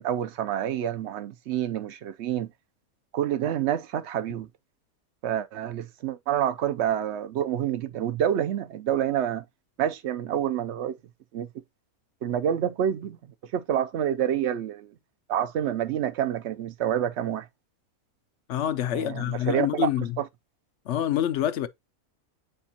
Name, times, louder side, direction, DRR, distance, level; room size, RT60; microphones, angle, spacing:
voice 1, 0.0-2.5 3.1-4.5 5.2-9.4 9.8-11.0 11.3-11.5 12.2-13.2 13.5-14.9 15.3-17.5 18.9-20.3, right 10 dB, 65° right, 0.8 m, -28 dB
voice 2, 18.5-20.1 20.9-21.7, left 11 dB, 60° left, 0.9 m, -26 dB
8.0 x 5.0 x 2.8 m
omnidirectional pair, 1.5 m